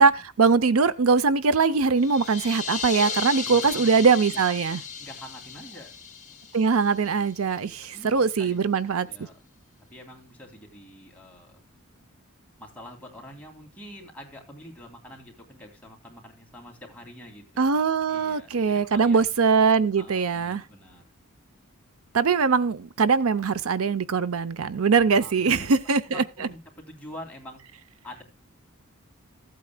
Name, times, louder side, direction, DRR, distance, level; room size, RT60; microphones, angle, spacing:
voice 1, 0.0-4.8 6.5-9.1 17.6-20.6 22.1-25.6 25.9-26.2, right 5 dB, 80° right, 0.6 m, -22 dB
sound 1, 1.9-7.6, left 6 dB, 35° left, 2.9 m, -35 dB
voice 2, 3.4-5.9 7.9-8.6 9.0-9.4 9.9-11.6 12.6-17.7 18.1-19.3 20.0-21.1 24.9-27.6 28.0-28.2, equal, 5° left, 3.1 m, -45 dB
15.5 x 8.5 x 2.2 m
head